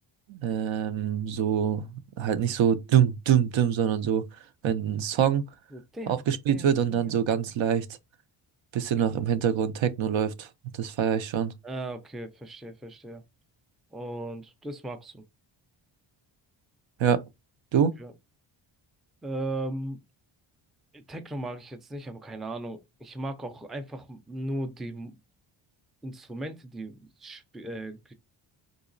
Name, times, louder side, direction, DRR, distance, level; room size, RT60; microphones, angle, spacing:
voice 1, 0.3-1.9 2.2-4.3 4.6-5.4 6.1-7.9 8.7-10.5 10.7-11.5 17.0-17.2 17.7-17.9, right 8 dB, 70° right, 0.6 m, -25 dB
voice 2, 5.7-6.8 7.1-7.2 11.6-13.2 13.9-15.3 17.7-18.1 19.2-20.0 20.9-25.1 26.0-28.1, right 1 dB, ahead, 0.3 m, -37 dB
3.9 x 2.8 x 2.5 m
cardioid pair, 105°, 47 cm